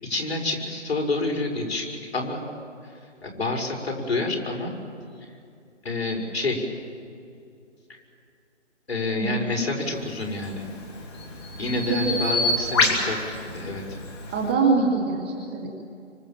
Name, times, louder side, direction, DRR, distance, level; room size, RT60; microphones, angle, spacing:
voice 1, 0.0-2.4 2.8-4.7 5.8-6.7 8.9-10.7 11.6-13.2 13.5-13.8, left 2 dB, 55° left, 1 dB, 5.9 m, -28 dB
Bird vocalization bird call bird song, 10.3-14.5, left 2 dB, 20° left, 2.7 m, -27 dB
voice 2, 11.9-12.2 14.3-15.7, right 4 dB, 10° right, -1 dB, 1.0 m, -24 dB
27.0 x 25.0 x 7.4 m, 2.4 s
figure-of-eight pair, 160°, 37 cm